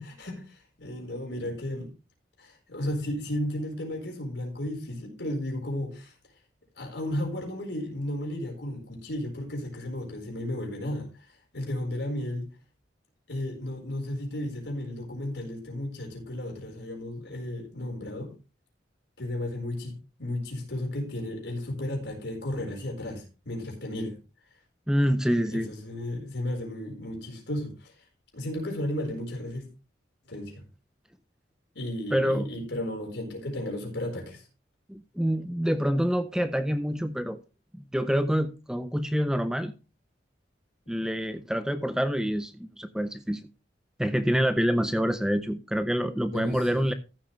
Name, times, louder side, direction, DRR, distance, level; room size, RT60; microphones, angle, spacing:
voice 1, 0.0-1.9 2.4-6.1 6.8-11.1 11.5-12.5 13.3-18.3 19.2-24.1 25.5-27.9 28.3-29.7 30.3-30.6 31.7-34.4 44.8-44.9 46.3-46.9, left 1 dB, 70° left, 4.5 m, -34 dB
voice 2, 24.9-25.7 32.1-32.5 34.9-37.4 37.9-39.7 40.9-43.4 44.0-46.9, equal, 5° right, 0.5 m, -26 dB
14.0 x 7.6 x 3.2 m
head